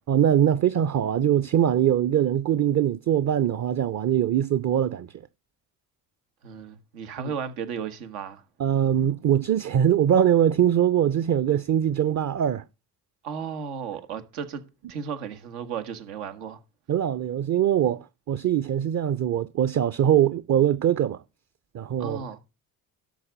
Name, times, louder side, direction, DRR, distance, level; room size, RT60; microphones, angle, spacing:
voice 1, 0.1-5.1 8.6-12.6 16.9-21.2 21.7-22.2, right 10 dB, 40° right, 0.7 m, -22 dB
voice 2, 6.4-8.4 13.2-16.6 22.0-22.4, right 7 dB, 80° right, 1.7 m, -34 dB
12.0 x 4.0 x 7.5 m
hypercardioid pair, 60°, 45 cm